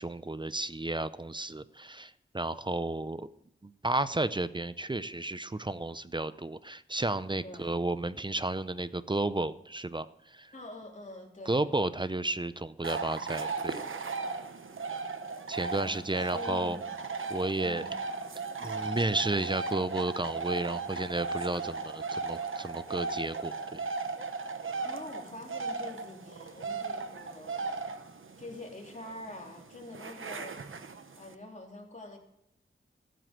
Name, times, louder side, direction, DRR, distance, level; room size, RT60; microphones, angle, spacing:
voice 1, 0.0-3.3 3.6-10.5 11.5-13.8 15.5-16.8 17.3-17.8 18.6-23.8, right 2 dB, 20° right, 14 dB, 0.6 m, -32 dB
voice 2, 7.4-7.8 10.5-11.6 15.8-16.8 17.6-17.9 24.8-27.8 28.4-30.6 31.1-32.2, left 2 dB, 35° left, 0 dB, 3.2 m, -45 dB
sound 1, 12.8-31.3, right 4 dB, 75° right, 1.0 m, -37 dB
14.5 x 7.8 x 7.8 m, 0.80 s
wide cardioid pair, 80°, 21 cm